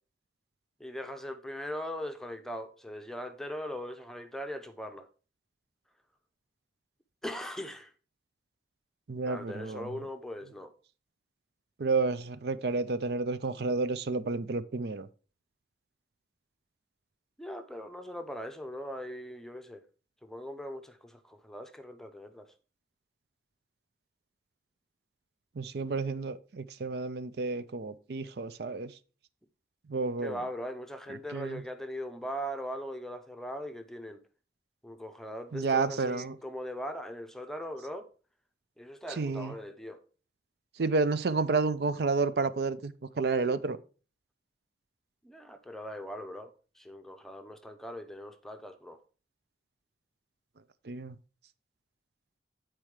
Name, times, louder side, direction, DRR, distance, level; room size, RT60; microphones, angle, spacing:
voice 1, 0.8-5.1 7.2-7.9 9.3-10.7 17.4-19.8 20.2-22.5 30.2-34.2 34.8-38.1 38.8-40.0 45.2-49.0, equal, ahead, 0.6 m, -40 dB
voice 2, 9.1-9.9 11.8-15.1 25.6-28.9 29.9-30.4 31.3-31.6 35.5-36.4 39.2-39.5 40.8-43.8 50.8-51.2, right 4 dB, 65° right, 0.5 m, -30 dB
9.0 x 4.5 x 4.8 m
head